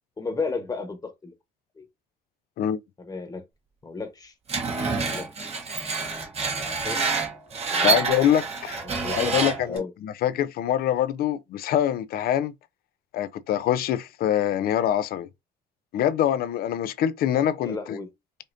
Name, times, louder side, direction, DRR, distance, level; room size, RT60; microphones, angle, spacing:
voice 1, 0.2-1.3 1.8-1.9 3.0-3.4 3.8-4.3 5.0-5.5 6.8-7.2 7.7-8.0 8.8-9.9 17.6-18.1, left 4 dB, 20° left, 1.1 m, -34 dB
Screech, 4.5-9.8, right 4 dB, 40° right, 1.1 m, -27 dB
voice 2, 7.8-8.8 9.2-12.5 13.1-15.3 15.9-18.0, left 10 dB, 65° left, 0.5 m, -24 dB
5.1 x 2.5 x 2.6 m
cardioid pair, 110°, 17 cm